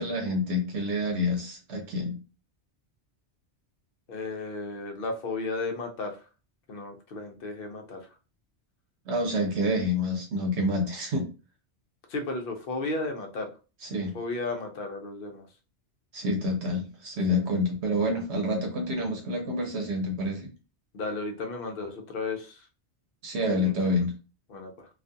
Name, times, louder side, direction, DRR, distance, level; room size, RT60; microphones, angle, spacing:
voice 1, 0.0-2.2 9.1-11.3 13.9-14.1 16.1-20.5 23.2-24.1, left 1 dB, 75° right, 2 dB, 0.9 m, -28 dB
voice 2, 4.1-6.2 6.7-8.0 12.1-13.5 14.1-15.5 17.3-17.4 20.9-22.6 23.5-23.7 24.5-24.9, left 3 dB, 60° left, 4 dB, 0.8 m, -34 dB
2.4 x 2.3 x 2.6 m, 0.32 s
omnidirectional pair, 1.1 m